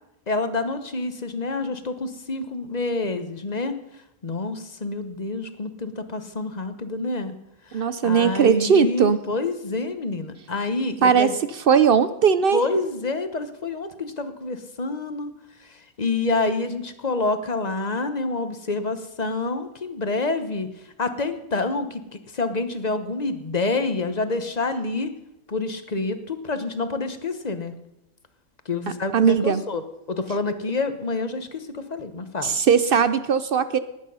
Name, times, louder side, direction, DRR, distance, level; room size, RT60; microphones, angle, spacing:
voice 1, 0.3-3.8 4.2-7.3 7.7-11.4 12.5-15.3 15.7-20.7 21.0-22.0 22.3-25.1 25.5-27.7 28.7-29.8 30.1-32.6, left 3 dB, 35° left, 10 dB, 0.9 m, -27 dB
voice 2, 7.7-9.2 11.0-11.3 11.7-12.6 29.1-29.6 32.4-33.8, right 7 dB, 60° right, 13 dB, 0.6 m, -18 dB
19.5 x 8.6 x 5.5 m, 0.87 s
omnidirectional pair, 1.5 m